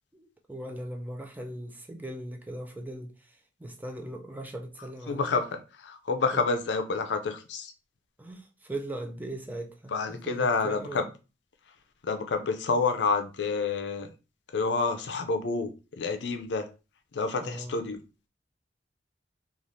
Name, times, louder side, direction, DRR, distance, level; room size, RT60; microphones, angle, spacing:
voice 1, 0.1-5.4 6.3-6.4 8.2-11.0 17.4-17.8, right 1 dB, 10° right, 0.4 m, -39 dB
voice 2, 5.1-7.7 9.9-11.0 12.0-14.1 14.5-16.7 17.1-18.0, left 4 dB, 70° left, 0.4 m, -28 dB
3.1 x 2.4 x 2.6 m
head